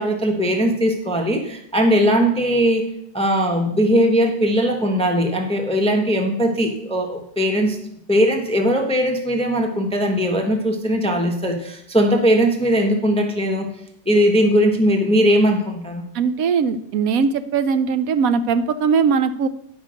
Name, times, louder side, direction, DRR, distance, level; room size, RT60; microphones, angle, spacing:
voice 1, 0.0-2.8 3.1-7.8 8.1-13.7 14.1-16.0, equal, 5° left, 3 dB, 0.8 m, -19 dB
voice 2, 16.1-19.5, right 6 dB, 70° right, 11 dB, 0.9 m, -20 dB
10.5 x 5.2 x 6.3 m, 0.73 s
omnidirectional pair, 1.9 m